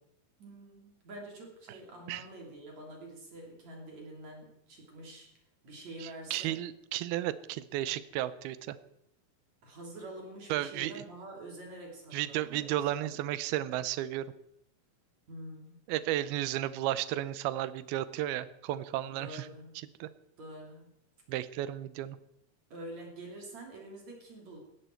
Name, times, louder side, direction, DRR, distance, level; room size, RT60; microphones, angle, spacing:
voice 1, 0.4-5.4 5.6-6.6 9.6-12.7 13.0-13.2 15.3-15.8 19.1-19.8 20.4-20.9 22.7-24.6, right 1 dB, 50° right, 0 dB, 4.2 m, -47 dB
voice 2, 6.0-8.8 10.5-11.0 12.1-14.3 15.9-19.5 19.8-20.1 21.3-22.2, right 13 dB, 85° right, 15 dB, 2.7 m, -33 dB
17.5 x 14.5 x 4.5 m, 0.77 s
omnidirectional pair, 4.4 m